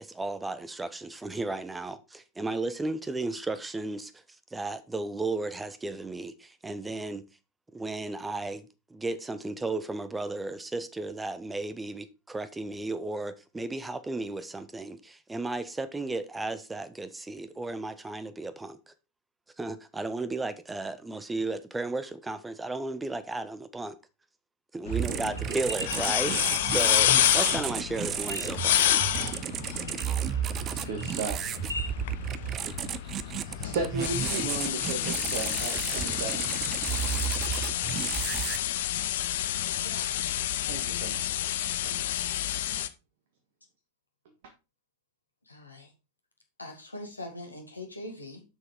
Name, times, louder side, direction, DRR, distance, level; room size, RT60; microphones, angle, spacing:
voice 1, 0.0-4.1 4.5-7.2 7.7-18.9 19.6-24.0 24.7-28.8, right 2 dB, 10° right, 1.0 m, -34 dB
sound 1, 24.9-42.9, left 12 dB, 55° left, 0.7 m, -29 dB
sound 2, 24.9-38.6, right 10 dB, 30° right, 0.6 m, -33 dB
voice 2, 24.9-25.2 30.7-31.5 33.6-36.5 40.7-41.5 41.9-42.0, right 4 dB, 55° right, 1.7 m, -35 dB
sound 3, 25.4-26.0 26.5-27.2 28.1-28.9 29.3-29.4 29.9-30.4 30.7-31.9, left 1 dB, 85° right, 1.2 m, -39 dB
voice 3, 39.8-40.3 45.5-45.9 46.6-48.4, left 2 dB, 80° left, 2.3 m, -42 dB
7.5 x 6.3 x 4.8 m
figure-of-eight pair, 90°, 0 cm